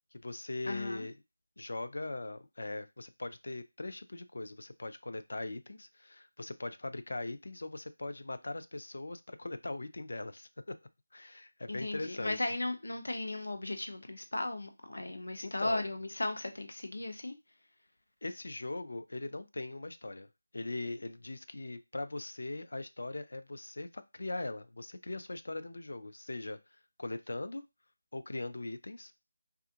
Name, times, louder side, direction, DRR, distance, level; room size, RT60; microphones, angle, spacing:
voice 1, 0.1-1.1 1.6-10.8 11.1-12.5 15.4-15.8 18.2-20.3 20.5-27.6 28.1-29.1, left 2 dB, 60° left, 10 dB, 0.3 m, -40 dB
voice 2, 0.6-1.0 11.7-17.3, left 2 dB, 90° left, 6 dB, 0.7 m, -36 dB
3.3 x 2.4 x 2.7 m, 0.24 s
figure-of-eight pair, 180°, 0 cm